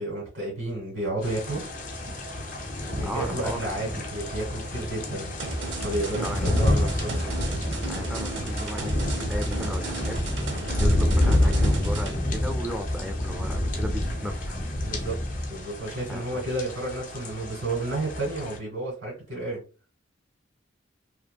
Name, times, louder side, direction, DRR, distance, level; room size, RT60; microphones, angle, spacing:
voice 1, 0.0-1.6 2.9-5.3 5.8-7.2 14.8-15.2 15.5-19.6, right 2 dB, 90° right, 1.4 m, -31 dB
sound 1, 1.2-18.6, left 1 dB, 45° left, 0.5 m, -28 dB
voice 2, 3.0-3.7 6.2-6.8 7.9-14.6 16.1-16.4, equal, 5° right, 0.3 m, -36 dB
sound 2, 5.4-12.2, right 2 dB, 70° right, 0.6 m, -33 dB
2.6 x 2.5 x 2.2 m
head